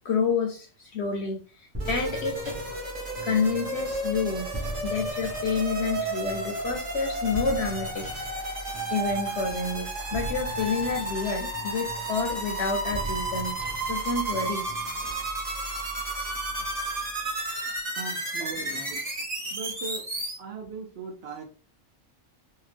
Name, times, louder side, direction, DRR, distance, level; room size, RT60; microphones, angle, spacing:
voice 1, 0.0-2.6 3.2-4.5 4.8-14.7 18.4-18.8, left 4 dB, 65° left, 2 dB, 0.8 m, -29 dB
sound 1, 1.7-17.4, right 1 dB, 15° right, 0.6 m, -40 dB
sound 2, 1.8-20.3, right 2 dB, 35° right, 1.2 m, -32 dB
voice 2, 18.0-19.0 19.5-20.0 20.4-21.4, right 4 dB, 60° right, 2 dB, 0.8 m, -38 dB
2.7 x 2.2 x 3.2 m, 0.37 s
omnidirectional pair, 1.3 m